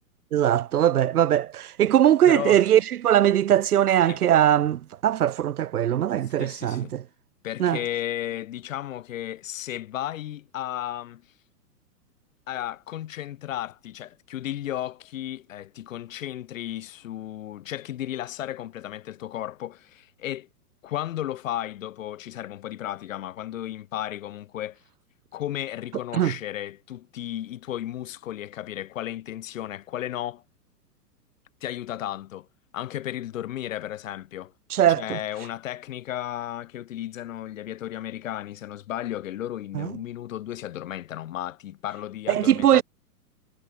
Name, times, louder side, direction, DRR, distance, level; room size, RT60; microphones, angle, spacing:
voice 1, 0.3-7.0 7.6-7.8 26.1-26.3 34.7-35.2 39.7-39.9 42.3-42.8, right 11 dB, 65° right, 0.8 m, -21 dB
voice 2, 2.3-2.7 4.0-4.2 6.4-6.9 7.4-11.2 12.5-20.5 20.8-24.8 25.3-30.4 31.6-32.5 32.7-34.5 35.0-42.8, left 12 dB, 55° left, 1.3 m, -34 dB
figure-of-eight pair, 110°, 48 cm